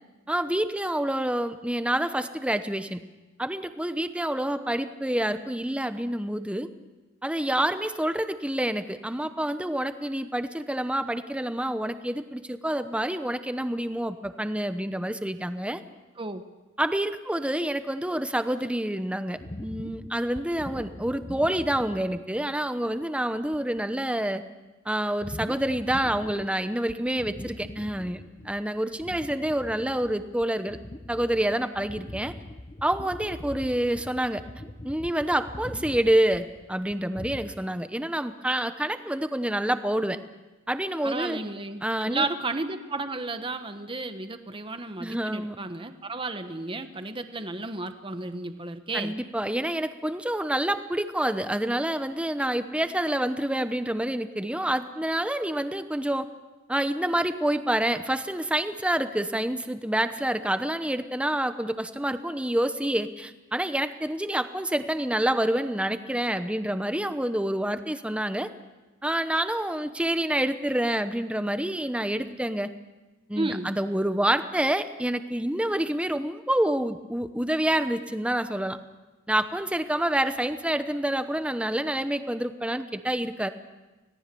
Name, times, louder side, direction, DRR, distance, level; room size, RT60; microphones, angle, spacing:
voice 1, 0.3-3.0 3.4-6.7 7.2-15.8 16.8-24.4 24.8-30.8 31.1-32.3 32.8-34.4 34.8-40.2 40.7-41.4 41.8-42.3 45.0-45.6 48.9-56.3 56.7-68.5 69.0-72.7 73.3-78.8 79.3-83.5, right 1 dB, 5° right, 10 dB, 0.9 m, -27 dB
sound 1, 19.4-22.5 22.9-23.0 23.5-23.8 25.2-26.6 26.9-28.6 28.9-37.5, left 1 dB, 25° left, 1.0 m, -42 dB
voice 2, 41.0-49.2 73.3-73.7, right 2 dB, 25° right, 8 dB, 1.2 m, -33 dB
25.5 x 18.0 x 6.9 m, 1.2 s
head